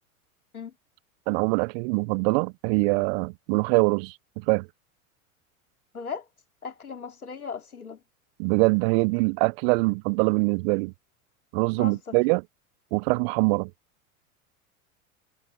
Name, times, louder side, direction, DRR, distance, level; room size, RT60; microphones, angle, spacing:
voice 1, 1.3-4.1 4.5-4.7 8.4-10.9 11.5-12.4 12.9-13.7, right 30 dB, 45° right, 0.5 m, -23 dB
voice 2, 5.9-6.3 6.6-8.0 11.8-12.2, left 5 dB, 90° left, 3.3 m, -37 dB
figure-of-eight pair, 85°, 42 cm